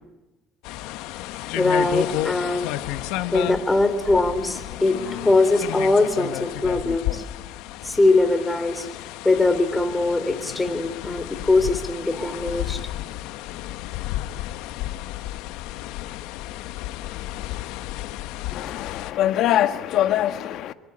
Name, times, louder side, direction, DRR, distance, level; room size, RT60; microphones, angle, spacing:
sound 1, 0.6-19.1, left 15 dB, 85° left, 1.2 m, -32 dB
voice 1, 1.6-2.7 3.3-7.2 7.8-8.9 9.2-12.9, left 2 dB, 10° left, 3.5 m, -21 dB
voice 2, 18.5-20.7, left 12 dB, 65° left, 1.5 m, -23 dB
26.5 x 23.0 x 8.9 m
cardioid pair, 115°, 0 cm